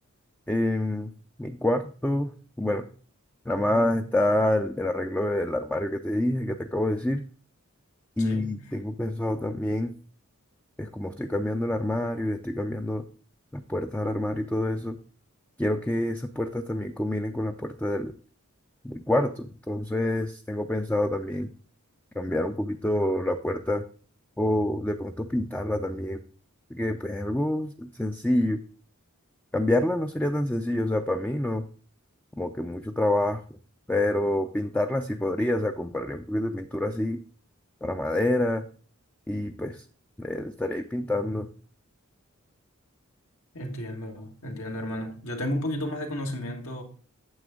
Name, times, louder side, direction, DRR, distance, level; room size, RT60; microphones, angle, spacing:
voice 1, 0.5-1.1 1.4-2.9 3.5-7.2 8.2-9.9 10.8-13.0 13.5-15.0 15.6-18.1 18.8-21.5 22.2-23.8 24.4-26.2 26.7-28.6 29.5-31.7 32.4-33.4 33.9-37.2 37.8-38.6 39.3-39.8 40.2-41.5, left 1 dB, 5° left, 0.4 m, -27 dB
voice 2, 8.2-8.5 43.5-46.8, left 1 dB, 75° left, 1.8 m, -33 dB
9.5 x 6.8 x 3.7 m
head